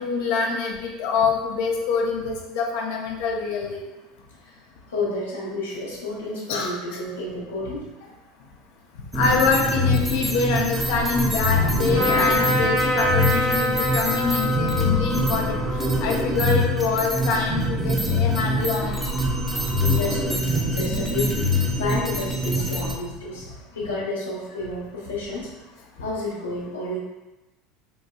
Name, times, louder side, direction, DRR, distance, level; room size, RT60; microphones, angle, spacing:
voice 1, 0.0-3.8 6.5-6.7 9.1-19.0, left 4 dB, 70° left, 0 dB, 0.5 m, -25 dB
voice 2, 4.9-7.9 19.9-23.5 23.7-25.5 26.0-27.0, left 2 dB, 90° left, -6 dB, 1.0 m, -30 dB
sound 1, 9.1-22.9, left 1 dB, 5° right, 0.6 m, -24 dB
Trumpet, 11.9-17.4, left 1 dB, 85° right, 1.0 m, -26 dB
4.0 x 2.2 x 2.3 m, 1.1 s
hypercardioid pair, 85°, 0 cm